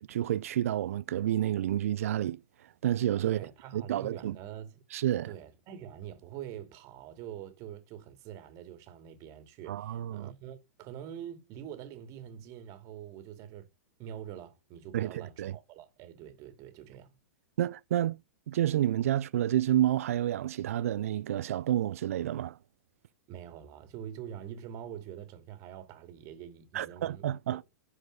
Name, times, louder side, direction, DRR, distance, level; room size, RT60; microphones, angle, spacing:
voice 1, 0.1-2.4 2.8-3.4 3.7-4.4 4.9-5.3 9.7-10.3 14.9-15.1 15.4-15.5 17.6-18.2 18.5-22.6 26.7-27.6, right 12 dB, 65° right, 0.5 m, -29 dB
voice 2, 3.2-4.8 5.2-13.7 14.0-17.2 23.3-27.2 27.5-27.6, right 10 dB, 40° right, 2.3 m, -45 dB
11.0 x 4.9 x 6.5 m
figure-of-eight pair, 105°, 8 cm